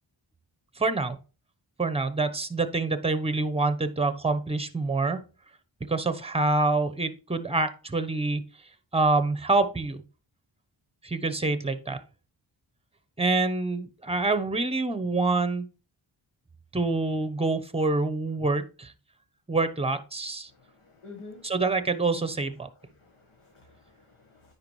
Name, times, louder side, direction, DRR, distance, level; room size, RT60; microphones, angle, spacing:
voice 1, 0.8-1.2 1.8-5.2 5.9-8.4 8.9-10.0 11.0-12.0 13.2-15.7 16.7-18.9 19.5-20.5 21.4-22.7, right 3 dB, 10° right, 12 dB, 0.8 m, -26 dB
voice 2, 20.6-21.5 22.9-24.5, left 3 dB, 80° left, 0 dB, 1.5 m, -49 dB
9.5 x 4.7 x 3.1 m, 0.35 s
cardioid pair, 40°, 49 cm